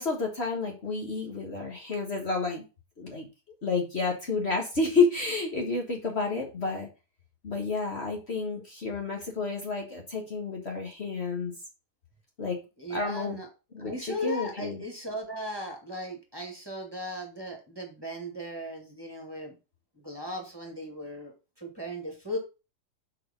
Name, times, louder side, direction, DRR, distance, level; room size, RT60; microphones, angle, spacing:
voice 1, 0.0-2.6 3.0-3.3 3.6-6.9 7.4-11.5 12.4-12.6 12.9-13.4 13.7-14.8, left 4 dB, 45° left, 1 dB, 1.5 m, -30 dB
voice 2, 12.8-13.5 13.8-19.5 20.0-21.3 21.6-22.4, equal, 15° right, 2 dB, 1.8 m, -37 dB
6.5 x 4.5 x 5.2 m, 0.30 s
omnidirectional pair, 1.7 m